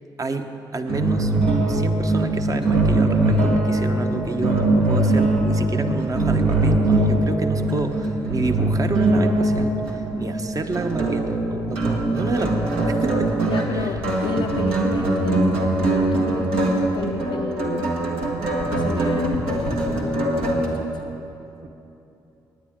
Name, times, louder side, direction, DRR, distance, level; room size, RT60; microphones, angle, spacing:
voice 1, 0.2-1.3 1.7-13.5 13.7-13.9 21.6-21.7, right 3 dB, 35° right, 7 dB, 1.0 m, -29 dB
sound 1, 0.9-20.7, right 2 dB, 70° right, 1.5 m, -22 dB
voice 2, 13.4-17.9 18.7-21.0, left 7 dB, 65° left, 0 dB, 0.5 m, -32 dB
18.5 x 9.8 x 3.7 m, 2.9 s
hypercardioid pair, 40°, 10 cm